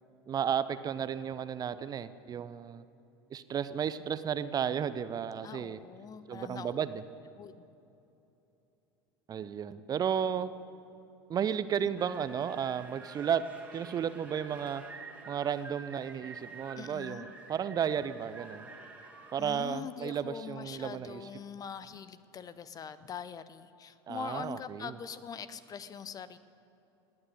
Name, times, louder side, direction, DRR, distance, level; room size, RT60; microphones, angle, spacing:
voice 1, 0.3-2.8 3.3-5.8 6.3-7.0 9.3-10.5 11.3-13.4 13.7-14.8 15.3-18.7 19.3-21.2 24.1-25.0, right 8 dB, 30° right, 14 dB, 0.6 m, -33 dB
voice 2, 5.4-6.8 7.4-7.7 16.7-17.3 19.4-26.4, left 7 dB, 30° left, 15 dB, 0.7 m, -43 dB
sound 1, 12.0-19.7, right 4 dB, 10° right, 2.1 m, -49 dB
19.0 x 8.9 x 8.2 m, 2.9 s
figure-of-eight pair, 75°, 13 cm